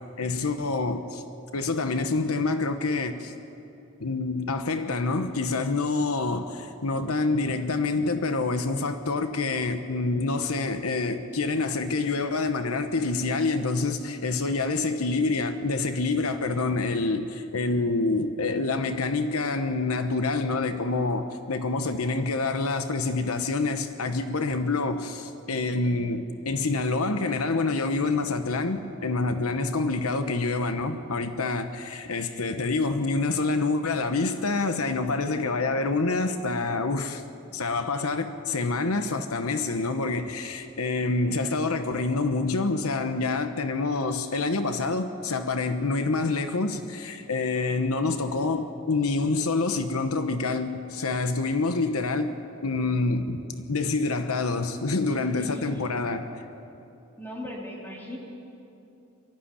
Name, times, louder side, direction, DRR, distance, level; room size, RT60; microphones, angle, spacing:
voice 1, 0.2-1.2 1.5-3.3 4.0-37.2 37.5-52.3 52.6-56.3, left 3 dB, 85° left, 1.1 m, -27 dB
voice 2, 55.4-55.9 57.2-58.2, left 1 dB, 10° left, 3.5 m, -38 dB
23.5 x 14.5 x 10.0 m
head